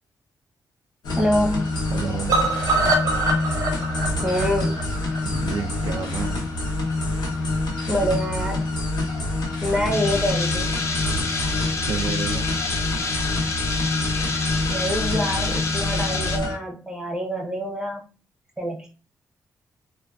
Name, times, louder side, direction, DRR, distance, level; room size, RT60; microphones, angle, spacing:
sound 1, 1.0-16.5, left 2 dB, 90° left, 0.7 m, -26 dB
voice 1, 1.1-1.7 4.2-5.0 7.9-8.7 9.6-10.8 14.6-18.1 18.6-18.9, equal, 10° right, 2 dB, 0.6 m, -26 dB
voice 2, 1.9-2.4 5.2-6.3 9.9-10.0 11.8-12.5, right 5 dB, 85° right, 3 dB, 0.4 m, -30 dB
sound 2, 2.3-6.3 6.6-6.7 7.0-7.1 7.4-7.5, right 2 dB, 60° right, 0.8 m, -25 dB
sound 3, 9.9-16.4, left 4 dB, 45° left, 0.4 m, -28 dB
2.4 x 2.3 x 2.2 m, 0.36 s
cardioid pair, 105°, 7 cm